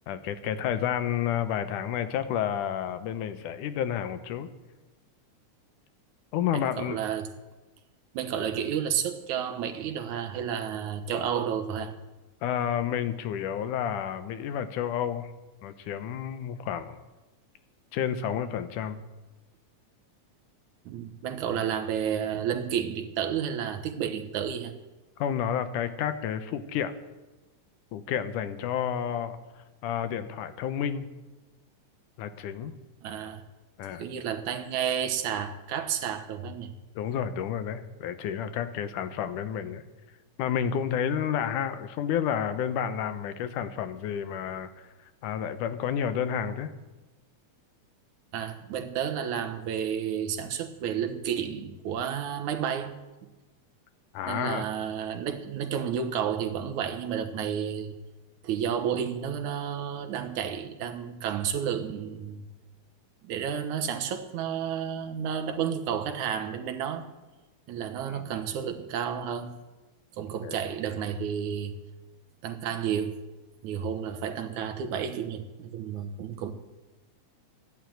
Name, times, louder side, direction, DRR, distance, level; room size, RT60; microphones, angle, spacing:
voice 1, 0.1-4.5 6.3-7.0 12.4-15.3 15.6-17.0 17.9-19.0 21.6-21.7 25.2-26.9 27.9-29.4 29.8-31.1 32.2-32.7 33.8-34.0 37.0-39.8 40.4-44.9 45.2-46.7 54.1-54.7 68.1-68.3 70.4-70.6, left 9 dB, 90° left, 11 dB, 2.5 m, -30 dB
voice 2, 6.5-7.3 8.1-11.9 20.9-24.7 33.0-33.4 34.0-36.8 48.3-52.9 54.3-58.0 58.4-62.5 63.2-67.1 67.7-69.6 70.1-71.8 72.4-73.2 73.6-76.5, right 8 dB, 75° right, 7 dB, 2.6 m, -31 dB
14.0 x 11.0 x 9.2 m, 1.1 s
omnidirectional pair, 3.5 m